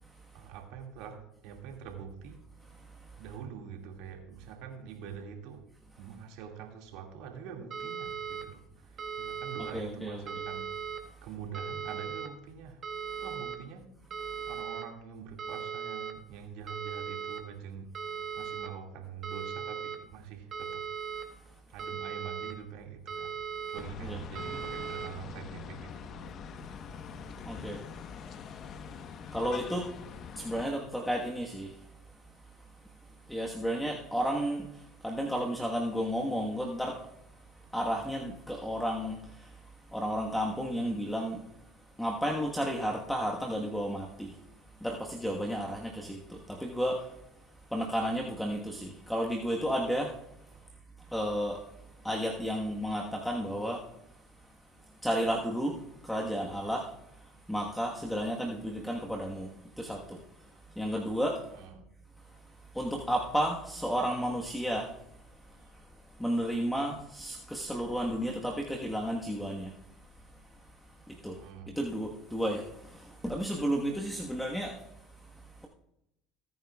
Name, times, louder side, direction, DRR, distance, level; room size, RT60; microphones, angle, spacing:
voice 1, 0.3-2.4 3.2-5.7 6.0-10.7 11.2-12.8 13.2-13.9 14.5-20.9 21.7-23.4 23.7-26.3 50.6-50.7 61.5-61.8 65.5-65.7 71.4-71.7, right 7 dB, 70° right, 2.2 m, -45 dB
sound 1, 7.7-8.4 9.0-9.7 10.3-11.0 11.5-12.3 12.8-13.6 14.1-14.8 15.4-16.1 16.7-17.4 17.9-18.7 19.2-20.0 20.5-21.2 21.8-22.5 23.1-23.8 24.4-25.1, right 6 dB, 45° right, 1.5 m, -38 dB
voice 2, 9.7-10.2 24.0-24.2 27.4-27.8 29.3-29.9 30.4-31.7 33.3-34.7 35.0-37.0 37.7-39.2 39.9-41.4 42.0-44.3 44.8-47.0 47.7-50.1 51.1-51.6 52.0-53.8 55.0-55.7 56.0-56.9 57.5-59.5 59.8-60.2 60.8-61.4 62.7-64.9 66.2-69.7 71.2-71.4 71.8-72.6 72.9-74.8, equal, 5° left, 1.4 m, -32 dB
sound 2, 23.8-30.7, left 7 dB, 50° left, 1.1 m, -44 dB
20.5 x 9.3 x 2.4 m
hypercardioid pair, 80°, 0 cm